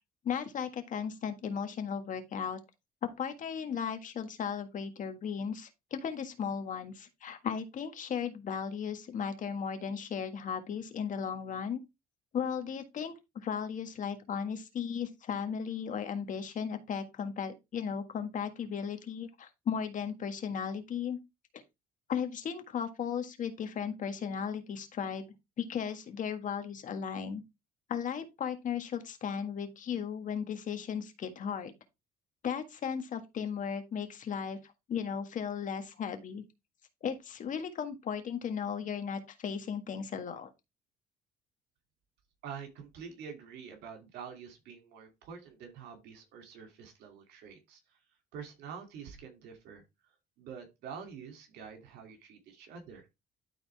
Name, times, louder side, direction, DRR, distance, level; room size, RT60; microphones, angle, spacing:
voice 1, 0.2-2.6 3.0-11.8 12.3-21.2 22.1-25.2 25.6-27.4 27.9-31.7 32.4-36.4 37.0-40.5, left 7 dB, 50° left, 1.7 m, -36 dB
voice 2, 42.4-47.8 48.3-49.8 50.4-53.1, right 6 dB, 85° right, 2.7 m, -47 dB
12.5 x 4.1 x 3.5 m
cardioid pair, 110°, 17 cm